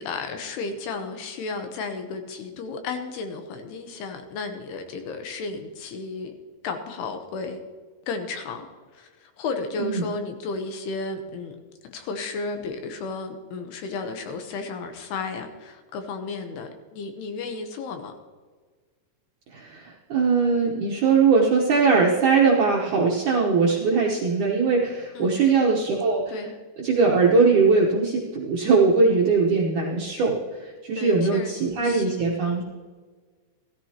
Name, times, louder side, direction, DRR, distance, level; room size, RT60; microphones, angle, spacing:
voice 1, 0.0-6.3 6.6-7.6 8.1-8.7 8.9-11.6 11.9-18.2 25.2-25.6 26.3-26.5 31.0-32.3, left 4 dB, 75° left, 6 dB, 2.8 m, -33 dB
voice 2, 19.5-26.2 26.8-32.6, right 4 dB, 70° right, -3 dB, 1.9 m, -21 dB
16.5 x 14.0 x 2.9 m, 1.4 s
omnidirectional pair, 5.1 m